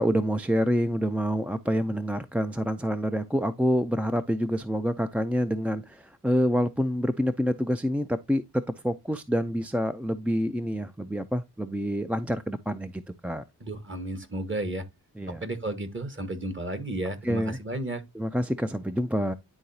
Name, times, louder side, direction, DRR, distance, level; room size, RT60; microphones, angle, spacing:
voice 1, 0.0-13.4 15.2-15.4 17.2-17.6 18.2-19.3, equal, 5° right, 0.4 m, -27 dB
voice 2, 13.6-14.8 15.3-18.0, right 1 dB, 30° right, 1.4 m, -33 dB
11.0 x 3.8 x 2.7 m
cardioid pair, 65°, 40 cm